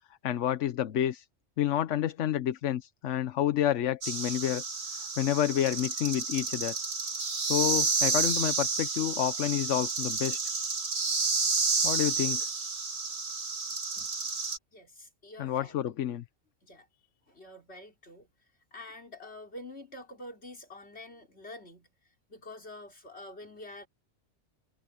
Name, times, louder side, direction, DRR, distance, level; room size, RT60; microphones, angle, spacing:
voice 1, 0.2-1.2 1.6-4.6 5.2-6.7 7.4-10.4 11.8-12.4 15.4-16.2, left 11 dB, 80° left, 1.1 m, -29 dB
sound 1, 4.0-14.6, right 4 dB, 60° right, 2.1 m, -30 dB
voice 2, 14.7-15.8 16.6-16.9 17.3-18.3 18.7-21.9 22.3-23.9, left 1 dB, 60° left, 4.3 m, -47 dB
omnidirectional pair, 1.2 m